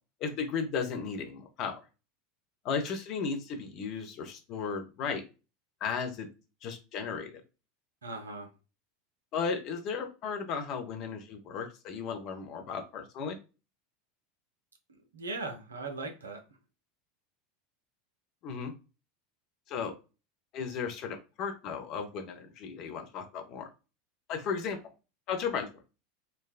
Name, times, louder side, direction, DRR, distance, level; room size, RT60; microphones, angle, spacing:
voice 1, 0.2-1.8 2.6-5.2 5.8-6.3 6.6-7.4 9.3-13.4 18.4-18.7 19.7-19.9 20.5-23.7 24.3-24.8 25.3-25.7, left 6 dB, 45° left, 0.6 m, -35 dB
voice 2, 8.0-8.5 14.9-16.4, right 3 dB, 75° right, 0.5 m, -39 dB
3.3 x 2.1 x 2.3 m
figure-of-eight pair, 80°, 0 cm